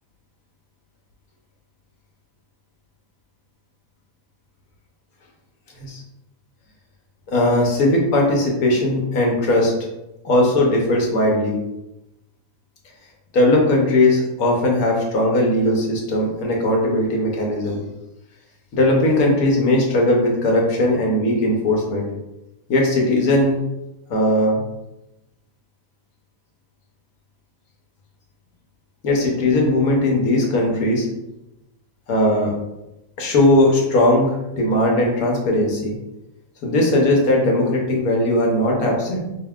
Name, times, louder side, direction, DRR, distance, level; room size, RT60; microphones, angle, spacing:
voice 1, 7.3-9.7 10.2-11.6 13.3-17.8 18.7-22.1 22.7-23.6 24.1-24.6 29.0-31.1 32.1-32.5 33.2-35.9 36.6-39.2, left 1 dB, 70° left, -1 dB, 1.4 m, -18 dB
5.2 x 2.9 x 2.4 m, 0.96 s
omnidirectional pair, 1.6 m